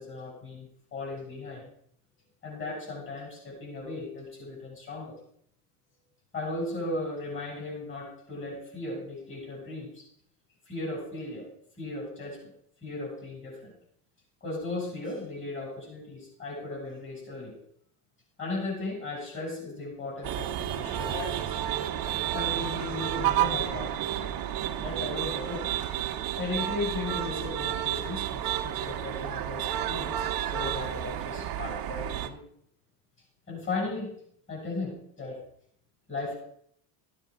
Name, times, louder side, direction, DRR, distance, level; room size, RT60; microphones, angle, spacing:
voice 1, 0.0-1.6 2.4-5.2 6.3-10.0 10.7-11.5 11.8-12.4 12.8-13.7 14.4-17.6 18.4-21.6 22.3-24.3 24.8-25.7 26.4-32.4 33.5-34.1 34.5-35.4 36.1-36.4, left 2 dB, 25° left, -2 dB, 6.7 m, -36 dB
sound 1, 20.2-32.3, right 12 dB, 50° right, 1.3 m, -31 dB
14.0 x 9.2 x 4.9 m, 0.65 s
supercardioid pair, 120°, 44 cm